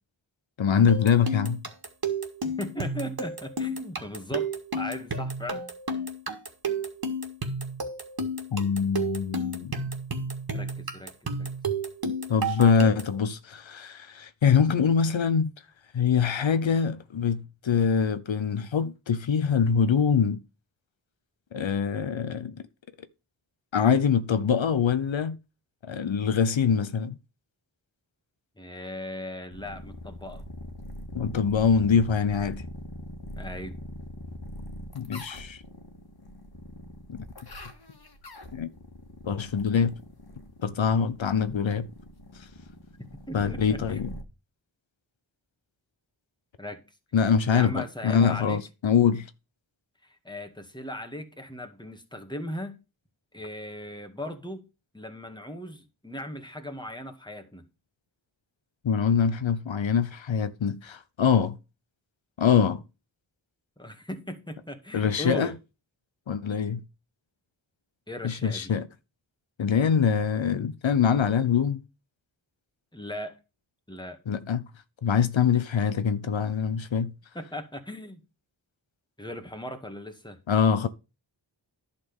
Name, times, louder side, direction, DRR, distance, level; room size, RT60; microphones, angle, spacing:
voice 1, 0.6-1.6 8.5-9.8 12.0-15.5 15.9-20.4 21.5-22.6 23.7-25.4 25.9-27.1 31.1-32.6 34.9-35.6 37.1-37.3 38.5-38.7 39.3-40.0 40.6-41.9 43.3-44.1 47.1-49.3 58.8-61.6 62.4-62.8 64.9-65.5 66.3-66.8 68.2-68.9 69.6-71.8 74.3-74.7 75.0-77.1 80.5-80.9, left 6 dB, 80° left, 0.8 m, -24 dB
sound 1, 0.9-13.2, right 2 dB, 50° right, 2.0 m, -32 dB
voice 2, 2.6-4.5 4.8-5.6 10.5-11.5 28.6-30.4 33.4-33.7 43.3-44.2 46.6-46.8 47.5-48.6 50.0-52.8 53.3-54.6 54.9-57.6 63.8-65.5 68.1-68.7 72.9-73.4 73.9-74.2 77.3-78.2 79.2-80.4, left 1 dB, 10° left, 2.0 m, -38 dB
sound 2, 29.5-44.2, left 1 dB, 55° left, 1.9 m, -42 dB
11.0 x 4.3 x 7.0 m
wide cardioid pair, 45°, 46 cm